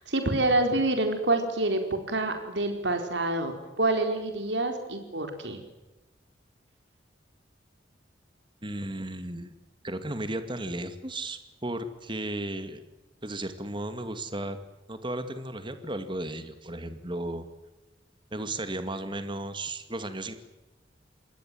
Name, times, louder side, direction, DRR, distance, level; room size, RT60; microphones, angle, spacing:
voice 1, 0.0-5.6, right 2 dB, 70° right, 6 dB, 4.4 m, -27 dB
voice 2, 8.6-9.5 9.8-12.8 13.2-14.6 14.9-17.5 18.3-20.3, right 1 dB, 25° right, 10 dB, 2.4 m, -34 dB
27.0 x 21.0 x 7.7 m, 1.1 s
head